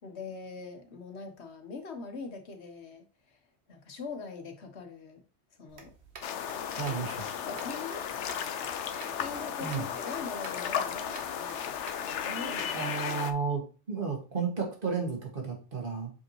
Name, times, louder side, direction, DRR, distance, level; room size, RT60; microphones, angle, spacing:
voice 1, 0.0-5.2 5.6-5.9 6.9-7.0 7.4-8.2 8.8-11.8 12.3-13.0, left 4 dB, 70° left, 6 dB, 1.4 m, -42 dB
sound 1, 5.7-12.8, right 4 dB, 70° right, 1.5 m, -51 dB
sound 2, 6.2-13.3, left 8 dB, 90° left, 1.0 m, -35 dB
voice 2, 6.8-7.2 9.6-9.8 12.7-13.6 13.9-16.1, right 5 dB, 50° right, 1 dB, 2.2 m, -32 dB
7.1 x 5.1 x 3.1 m, 0.34 s
omnidirectional pair, 1.2 m